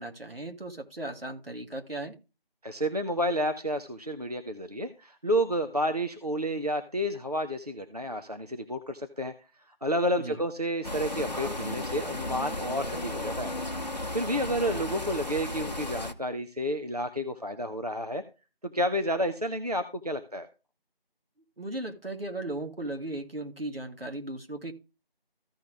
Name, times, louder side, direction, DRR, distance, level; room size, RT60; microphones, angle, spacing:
voice 1, 0.0-2.1 10.2-10.4 15.1-15.2 21.6-24.7, right 1 dB, 70° right, 4 dB, 2.0 m, -37 dB
voice 2, 2.6-9.3 9.8-13.5 14.1-18.2 18.6-20.5, equal, 40° right, 7 dB, 0.7 m, -30 dB
sound 1, 10.8-16.1, left 1 dB, 45° left, 0.9 m, -34 dB
15.0 x 5.0 x 3.3 m, 0.30 s
figure-of-eight pair, 180°, 30 cm